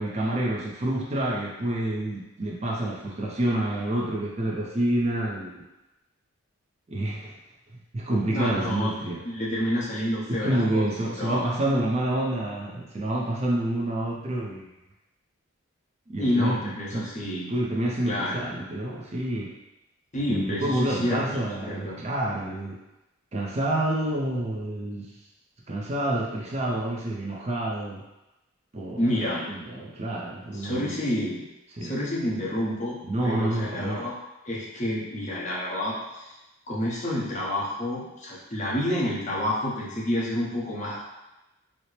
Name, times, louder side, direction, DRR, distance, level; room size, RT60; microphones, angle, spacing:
voice 1, 0.0-5.6 6.9-7.3 7.9-9.2 10.3-14.7 16.1-17.1 17.5-19.5 20.3-22.8 23.3-25.1 25.7-28.0 28.7-30.8 31.8-31.9 33.0-34.1, right 1 dB, 30° right, -3 dB, 0.4 m, -28 dB
voice 2, 8.3-8.9 9.2-11.4 16.2-17.5 18.1-18.5 20.1-22.0 29.0-29.4 30.5-31.4 31.8-34.1 34.4-36.3 36.7-41.0, left 1 dB, 35° left, -5 dB, 0.8 m, -29 dB
4.2 x 2.0 x 3.1 m, 0.97 s
head